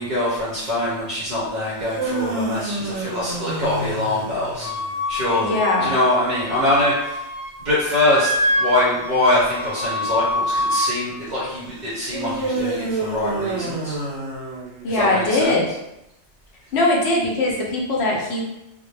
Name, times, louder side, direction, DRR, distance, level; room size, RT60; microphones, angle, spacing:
voice 1, 0.0-4.7 5.1-7.3 7.6-13.9 14.9-15.8, left 1 dB, 45° right, -9 dB, 0.8 m, -23 dB
sound 1, 1.7-5.0 12.1-15.1, right 2 dB, 85° right, 1.0 m, -28 dB
Wind instrument woodwind instrument, 4.6-7.5 7.8-10.9, left 1 dB, 40° left, 0.6 m, -25 dB
voice 2, 5.4-5.9 14.8-15.7 16.7-18.4, left 2 dB, 70° left, -2 dB, 0.9 m, -20 dB
2.2 x 2.1 x 3.2 m, 0.88 s
omnidirectional pair, 1.2 m